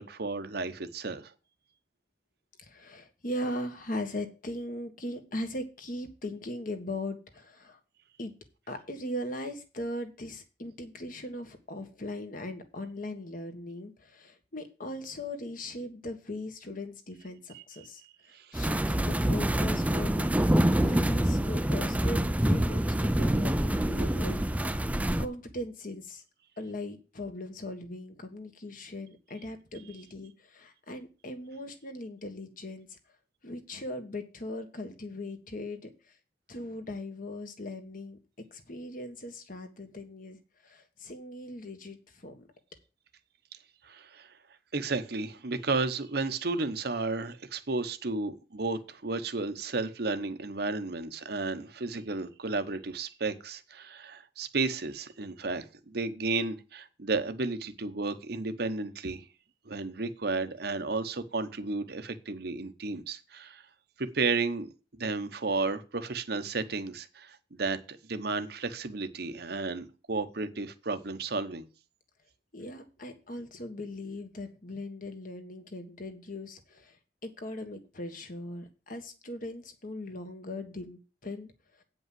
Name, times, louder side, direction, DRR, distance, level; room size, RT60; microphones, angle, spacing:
voice 1, 0.0-1.3 17.5-17.6 18.3-18.7 43.8-44.3 44.7-59.2 59.6-63.6 64.0-71.6, right 3 dB, 60° right, 1.0 m, -33 dB
voice 2, 2.6-7.8 8.2-8.3 8.7-18.0 18.3-20.3 20.8-26.2 26.6-33.0 33.4-36.2 36.5-42.5 72.5-81.5 81.8-81.9, left 1 dB, 50° left, 1.6 m, -39 dB
sound 1, 18.5-25.3, right 1 dB, 10° right, 0.5 m, -26 dB
8.7 x 5.5 x 7.6 m
head